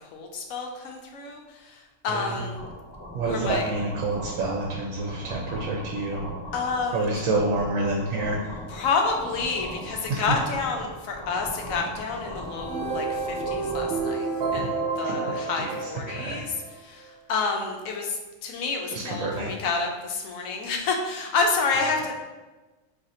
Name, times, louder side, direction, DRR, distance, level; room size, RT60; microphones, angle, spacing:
voice 1, 0.1-1.4 1.7-1.8 2.0-2.6 3.3-3.7 6.5-7.1 8.7-14.3 14.5-16.5 16.8-22.1, left 4 dB, 80° left, 2 dB, 1.0 m, -29 dB
sound 1, 2.5-14.0, equal, 20° left, 0.9 m, -39 dB
voice 2, 3.1-6.2 6.9-8.4 10.1-10.3 15.0-15.6 16.2-16.4 18.9-19.5, right 2 dB, 85° right, -2 dB, 1.0 m, -28 dB
sound 2, 12.4-16.7, right 4 dB, 60° right, 0.9 m, -30 dB
2.7 x 2.5 x 4.1 m, 1.2 s
omnidirectional pair, 1.4 m